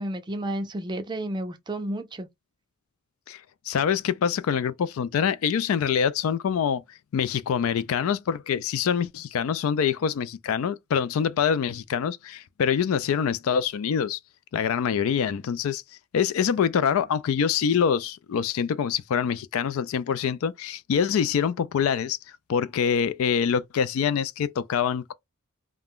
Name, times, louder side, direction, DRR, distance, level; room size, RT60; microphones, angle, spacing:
voice 1, 0.0-2.3, right 1 dB, 20° right, 0.4 m, -31 dB
voice 2, 3.7-14.2 14.5-15.8 16.1-22.2 22.5-25.1, left 7 dB, 70° left, 0.3 m, -25 dB
2.4 x 2.2 x 3.5 m
head